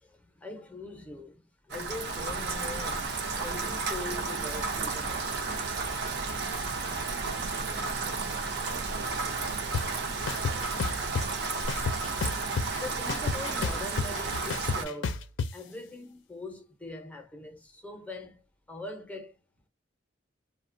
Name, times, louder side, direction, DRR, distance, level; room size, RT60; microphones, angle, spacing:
voice 1, 0.0-5.7 12.2-15.3 15.5-18.4 18.7-19.4, left 2 dB, 10° left, 0.5 m, -42 dB
Rain, 1.7-14.8, right 4 dB, 60° right, 0.5 m, -32 dB
voice 2, 7.0-8.3 8.6-10.2 10.4-11.0, right 3 dB, 85° right, 0.8 m, -47 dB
sound 1, 9.7-9.8 10.3-11.3 11.7-12.8 13.1-15.5, left 5 dB, 85° left, 0.4 m, -30 dB
2.8 x 2.1 x 2.4 m
head